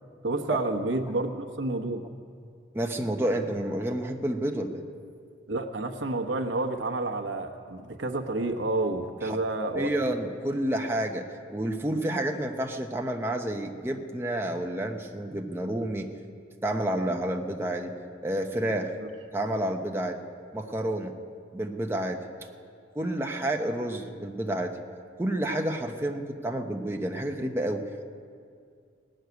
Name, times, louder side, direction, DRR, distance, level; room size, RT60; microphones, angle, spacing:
voice 1, 0.2-2.1 5.5-9.9, right 2 dB, 70° right, 5 dB, 1.1 m, -29 dB
voice 2, 2.7-4.8 9.2-9.4 9.7-16.1 16.6-17.9 18.2-18.9 19.3-20.2 20.5-21.1 21.5-22.2 22.9-24.8 25.2-27.8, right 1 dB, 10° right, 2 dB, 0.8 m, -29 dB
18.5 x 6.4 x 9.4 m, 2.2 s
head